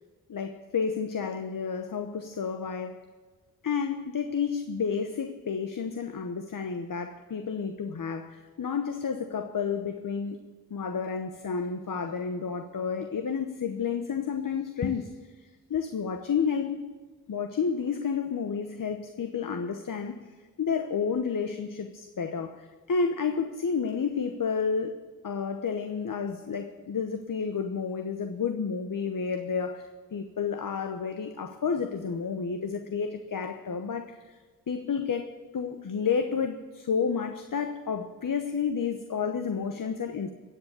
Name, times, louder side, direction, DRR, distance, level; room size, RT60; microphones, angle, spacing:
voice 1, 0.3-3.1 3.6-10.4 10.7-15.1 15.7-16.8 17.3-20.2 20.6-34.4 34.7-40.3, left 6 dB, 60° left, 1.0 m, -31 dB
16.0 x 7.4 x 8.1 m
cardioid pair, 40°, 37 cm